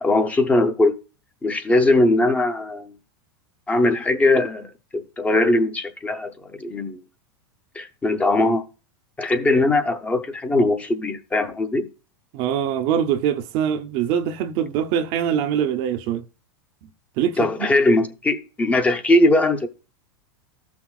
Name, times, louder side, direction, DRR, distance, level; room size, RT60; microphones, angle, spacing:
voice 1, 0.0-1.0 1.4-2.9 3.7-7.0 7.7-8.6 9.2-11.9 17.4-19.7, left 2 dB, 10° left, 0.7 m, -20 dB
voice 2, 12.3-16.2 17.2-17.5, right 9 dB, 45° right, 0.7 m, -23 dB
13.5 x 6.0 x 2.4 m
supercardioid pair, 145°, 13 cm